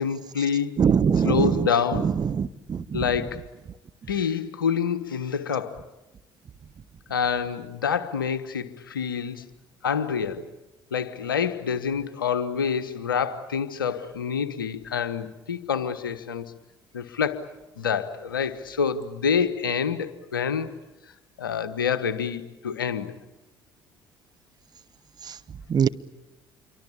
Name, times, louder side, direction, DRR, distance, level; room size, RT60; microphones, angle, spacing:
voice 1, 0.0-0.7 1.2-2.1 2.9-3.4 4.1-5.8 7.1-9.5 9.8-10.5 10.9-16.4 16.9-17.4 17.8-20.7 21.4-23.1, left 6 dB, 85° left, 12 dB, 1.3 m, -27 dB
voice 2, 0.8-1.5 2.2-3.0 25.7-25.9, right 7 dB, 40° right, 13 dB, 1.1 m, -22 dB
27.5 x 24.0 x 8.6 m, 1.0 s
figure-of-eight pair, 55°, 11 cm